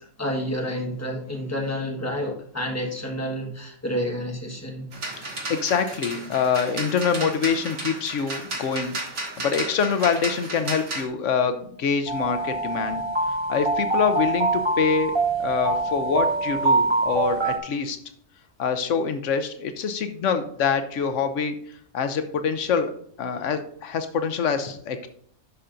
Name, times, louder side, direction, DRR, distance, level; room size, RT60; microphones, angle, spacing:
voice 1, 0.2-4.9, equal, 15° left, 0 dB, 1.3 m, -29 dB
sound 1, 4.9-11.1, right 2 dB, 70° right, 1.9 m, -33 dB
voice 2, 5.2-13.0 13.5-18.0 18.6-21.6 21.9-22.9 23.2-25.1, left 6 dB, 80° left, 9 dB, 1.0 m, -25 dB
sound 2, 12.1-17.6, right 3 dB, 25° right, 0.9 m, -24 dB
11.0 x 5.6 x 2.6 m, 0.64 s
omnidirectional pair, 1.3 m